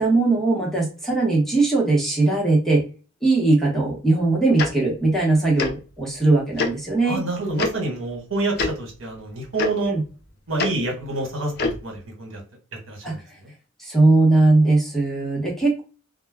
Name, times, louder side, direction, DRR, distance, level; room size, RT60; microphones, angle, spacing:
voice 1, 0.0-2.8 3.2-7.2 9.9-10.0 13.0-13.1 13.8-15.8, right 2 dB, ahead, -4 dB, 0.8 m, -19 dB
Tick-tock, 4.6-4.7 5.6-5.7 6.6-6.7 7.6-7.7 8.5-8.7 9.6-9.7 10.6-10.7 11.6-11.8, left 4 dB, 50° left, 0.4 m, -23 dB
voice 2, 7.0-9.9 10.5-12.4 12.9-13.5, right 2 dB, 80° right, 0 dB, 1.2 m, -27 dB
2.2 x 2.1 x 3.4 m, 0.35 s
head